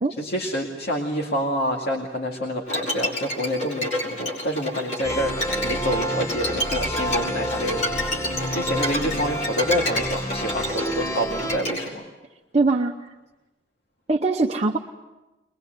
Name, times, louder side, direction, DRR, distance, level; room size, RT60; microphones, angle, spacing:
voice 1, 0.2-12.1, equal, 55° left, -1 dB, 2.3 m, -28 dB
Bowed string instrument, 2.7-11.9, left 1 dB, 40° left, 5.4 m, -29 dB
sound 1, 5.0-11.6, equal, 15° left, 1.0 m, -29 dB
voice 2, 12.5-13.1 14.1-14.8, right 3 dB, 35° right, 1 dB, 0.9 m, -22 dB
22.5 x 22.0 x 7.9 m, 1.1 s
head